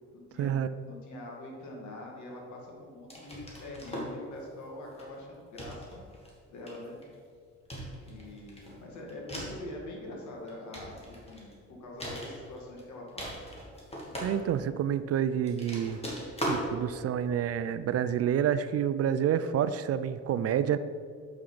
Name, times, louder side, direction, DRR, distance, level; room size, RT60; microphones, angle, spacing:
voice 1, 0.1-6.0 6.5-7.0 8.1-11.5 11.8-13.4, left 1 dB, 70° left, -1 dB, 2.1 m, -44 dB
sound 1, 3.1-4.2 4.9-5.2 5.6-6.3 6.7-7.1 7.7-9.7 10.3-11.5 12.0-12.8 13.1-14.8 15.4-16.7, equal, 20° left, 2.1 m, -39 dB
voice 2, 14.2-16.0 16.5-20.8, right 9 dB, 55° right, 13 dB, 0.4 m, -28 dB
7.2 x 5.6 x 5.0 m, 2.1 s
cardioid pair, 90°, 30 cm